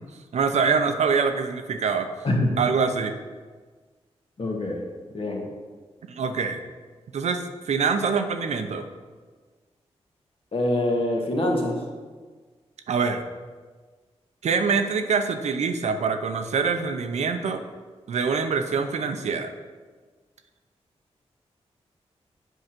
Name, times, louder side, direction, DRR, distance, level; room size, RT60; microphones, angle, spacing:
voice 1, 0.3-2.1 2.6-3.1 6.1-6.6 7.1-8.8 12.9-13.2 14.4-17.6 18.1-19.5, right 5 dB, 85° right, 7 dB, 0.7 m, -24 dB
voice 2, 2.2-2.6 4.4-4.8 5.1-5.5 10.5-11.8, left 1 dB, 55° left, 0 dB, 1.7 m, -25 dB
8.0 x 4.8 x 5.9 m, 1.4 s
wide cardioid pair, 90°, 11 cm